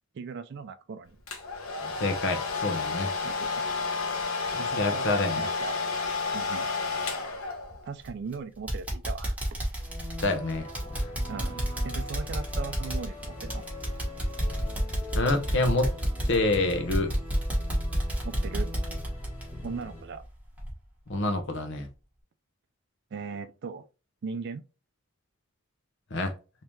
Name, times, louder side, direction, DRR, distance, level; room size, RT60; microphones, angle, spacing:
voice 1, 0.1-1.2 3.2-3.7 4.6-5.9 6.3-6.7 7.8-9.4 11.3-13.6 18.2-18.7 19.6-20.2 23.1-23.9 24.2-24.6, right 5 dB, 55° right, 0.3 m, -38 dB
Domestic sounds home sounds, 1.3-8.0, left 4 dB, 85° left, 0.8 m, -31 dB
voice 2, 2.0-3.1 4.8-5.5 10.2-10.7 10.9-11.1 15.2-15.9 16.3-17.1 21.1-21.9 26.1-26.3, left 2 dB, 60° left, 0.7 m, -27 dB
sound 1, 8.0-8.3 8.7-20.3 20.6-20.7 21.2-21.3, equal, 5° right, 1.0 m, -30 dB
sound 2, 9.7-20.0, left 2 dB, 30° left, 0.9 m, -43 dB
3.4 x 2.8 x 3.0 m
head